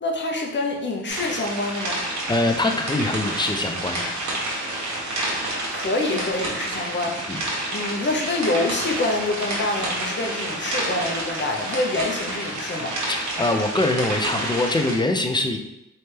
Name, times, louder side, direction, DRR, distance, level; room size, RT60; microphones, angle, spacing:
voice 1, 0.0-2.0 5.7-7.4 7.7-13.0, left 2 dB, 40° left, 1 dB, 0.9 m, -26 dB
sound 1, 1.1-15.0, right 1 dB, 75° right, 1.3 m, -29 dB
voice 2, 2.3-4.0 7.3-7.4 13.4-15.6, left 2 dB, 15° left, 4 dB, 0.5 m, -23 dB
4.1 x 3.3 x 3.4 m, 0.87 s
cardioid pair, 90°, 29 cm